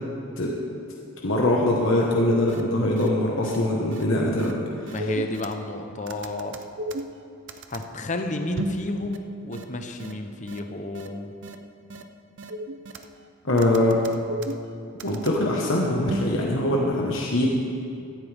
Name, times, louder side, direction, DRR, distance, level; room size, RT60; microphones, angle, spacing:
voice 1, 1.2-4.5 4.9-5.1 13.4-14.0 15.0-17.5, left 1 dB, 60° left, -2 dB, 1.4 m, -22 dB
sound 1, 2.1-2.2 2.5-2.6 3.0-3.1 3.4-3.6 3.9-4.0 4.4-4.5 4.9-5.7 6.1-7.9 8.6-8.9 9.1-9.2 9.5-9.6 10.0-10.1 10.5-10.6 10.9-11.1 11.4-11.6 11.9-12.0 12.4-13.2 13.6-15.4 16.1-16.3, right 2 dB, 55° right, 0.7 m, -34 dB
voice 2, 4.9-6.6 7.7-11.3, left 2 dB, 35° left, 5 dB, 0.9 m, -31 dB
16.5 x 12.5 x 3.6 m, 2.5 s
head